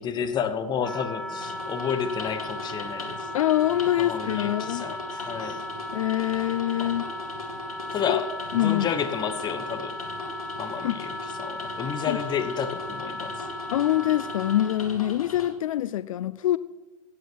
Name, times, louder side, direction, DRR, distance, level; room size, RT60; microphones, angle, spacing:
voice 1, 0.0-3.3 4.0-5.6 6.8-6.9 7.9-10.0 10.6-11.1 11.4-13.4, left 7 dB, 25° left, 1.1 m, -31 dB
Wind instrument woodwind instrument, 0.8-14.9, left 1 dB, 5° left, 0.5 m, -36 dB
sound 1, 1.4-15.5, left 3 dB, 85° left, 2.6 m, -39 dB
voice 2, 3.3-4.9 5.9-7.1 8.1-8.2 8.5-8.9 10.8-11.0 12.1-12.2 13.7-16.6, left 13 dB, 70° left, 0.4 m, -25 dB
15.5 x 9.3 x 4.6 m
hypercardioid pair, 115°, 18 cm